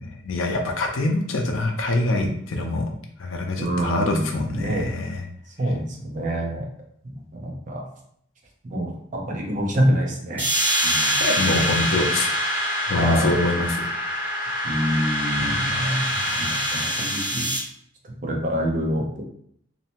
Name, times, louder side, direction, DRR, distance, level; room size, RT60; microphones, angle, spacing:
voice 1, 0.0-2.9 3.2-5.2 11.2-12.6 12.9-13.8 15.4-16.5, left 2 dB, 80° left, 3 dB, 0.5 m, -25 dB
voice 2, 3.6-5.0 5.6-6.7 7.0-7.8 8.6-10.5 10.8-11.2 11.6-11.7 13.0-13.4 14.6-16.0 16.4-17.5 18.2-19.2, equal, 40° right, 0 dB, 0.5 m, -26 dB
sound 1, 10.4-17.6, equal, 10° right, 0.8 m, -24 dB
2.7 x 2.1 x 2.9 m, 0.69 s
head